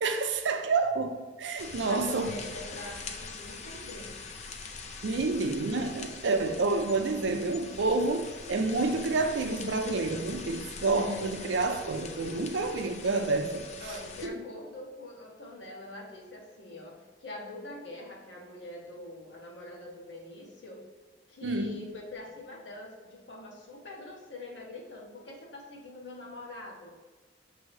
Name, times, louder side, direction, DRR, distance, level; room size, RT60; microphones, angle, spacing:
voice 1, 0.0-2.4 5.0-13.6 14.2-14.3 21.4-21.7, right 3 dB, 75° right, 0.5 m, -29 dB
sound 1, 1.6-14.3, left 4 dB, 35° left, 0.4 m, -43 dB
voice 2, 1.8-4.2 10.9-11.3 13.8-20.8 21.3-26.9, left 2 dB, 70° left, 1.1 m, -44 dB
6.2 x 2.7 x 3.2 m
head